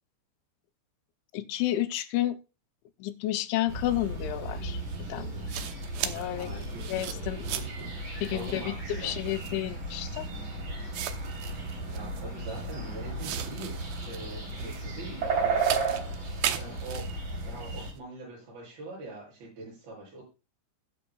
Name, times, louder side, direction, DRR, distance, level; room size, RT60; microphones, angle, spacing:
voice 1, 1.3-2.4 3.0-4.8 5.1-5.7 6.0-6.5 6.9-7.4 8.2-10.3, left 14 dB, 80° left, 3.0 m, -31 dB
sound 1, 3.7-17.9, right 3 dB, 35° right, 4.2 m, -34 dB
sound 2, 4.9-5.0 5.5-7.9 8.2-8.6 9.2-9.6 10.3-10.4 10.9-12.7 13.2-14.9 15.6-17.9, right 11 dB, 90° right, 2.0 m, -37 dB
voice 2, 6.3-6.9 7.5-7.9 8.3-8.7 9.0-9.1 11.9-13.8 14.0-16.0 16.6-20.2, right 2 dB, 50° right, 9.5 m, -43 dB
21.5 x 7.7 x 2.3 m
omnidirectional pair, 5.4 m